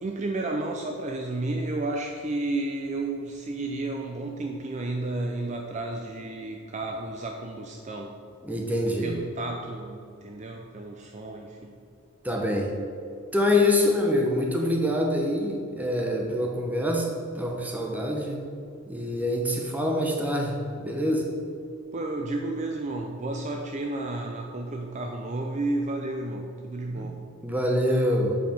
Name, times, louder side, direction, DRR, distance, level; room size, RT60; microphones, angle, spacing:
voice 1, 0.0-8.1 9.0-11.7 21.9-27.2, right 2 dB, 30° right, 2 dB, 0.4 m, -32 dB
voice 2, 8.4-9.2 12.2-12.8 13.3-18.4 18.9-21.3 26.8-27.1 27.4-28.4, left 1 dB, 5° right, 1 dB, 0.9 m, -25 dB
7.7 x 5.0 x 5.2 m, 2.4 s
head